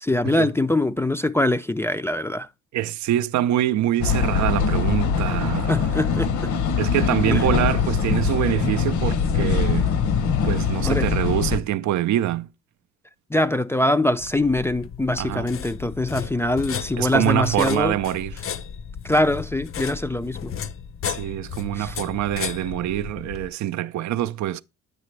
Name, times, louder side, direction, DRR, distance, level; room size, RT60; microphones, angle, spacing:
voice 1, 0.0-2.5 5.7-6.5 7.3-7.5 10.8-11.1 13.3-18.0 19.0-20.5 21.7-22.0, left 1 dB, 10° left, 0.3 m, -23 dB
voice 2, 2.7-5.9 6.8-9.9 10.4-12.5 15.2-15.5 17.0-18.3 21.1-24.6, right 13 dB, 70° right, 0.5 m, -25 dB
sound 1, 4.0-11.6, left 6 dB, 75° left, 0.9 m, -22 dB
sound 2, 14.2-23.5, left 8 dB, 45° left, 0.6 m, -34 dB
8.2 x 5.9 x 3.2 m
cardioid pair, 90°, 30 cm